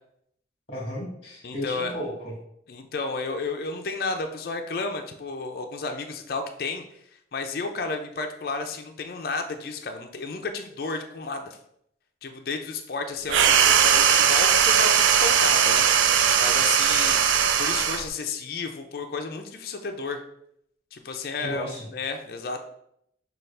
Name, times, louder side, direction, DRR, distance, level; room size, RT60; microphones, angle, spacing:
voice 1, 0.7-2.3 21.4-21.8, left 1 dB, 30° left, -3 dB, 1.2 m, -34 dB
voice 2, 1.4-2.0 2.7-6.8 7.3-11.6 12.2-15.9 16.4-17.2 17.6-20.2 20.9-22.6, left 3 dB, 50° left, 5 dB, 0.4 m, -32 dB
sound 1, 13.3-18.1, right 8 dB, 80° right, 0.3 m, -19 dB
5.5 x 2.3 x 3.2 m, 0.73 s
head